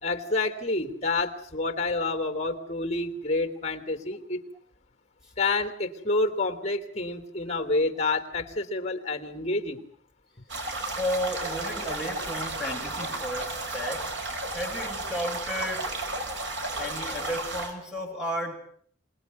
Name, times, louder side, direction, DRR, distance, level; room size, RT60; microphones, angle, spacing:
voice 1, 0.0-4.4 5.4-9.9, left 2 dB, 35° left, 9 dB, 3.1 m, -28 dB
sound 1, 10.5-17.7, right 2 dB, 70° right, 5.8 m, -33 dB
voice 2, 10.8-16.0 16.8-18.6, equal, ahead, 1 dB, 7.9 m, -33 dB
27.0 x 20.0 x 9.4 m, 0.62 s
head